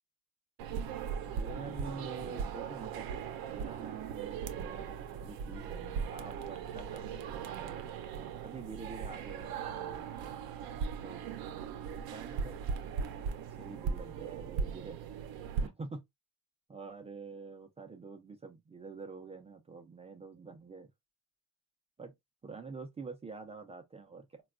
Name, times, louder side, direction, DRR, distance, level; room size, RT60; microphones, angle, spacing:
sound 1, 0.6-15.7, right 6 dB, 60° right, 0.6 m, -38 dB
voice 1, 1.3-7.9 8.4-10.1 11.0-11.5 12.1-12.6 13.6-15.0 15.6-16.0 16.7-20.9 22.0-22.1 22.4-24.4, right 4 dB, 15° right, 0.3 m, -47 dB
3.9 x 2.2 x 2.3 m
cardioid pair, 140°, 42 cm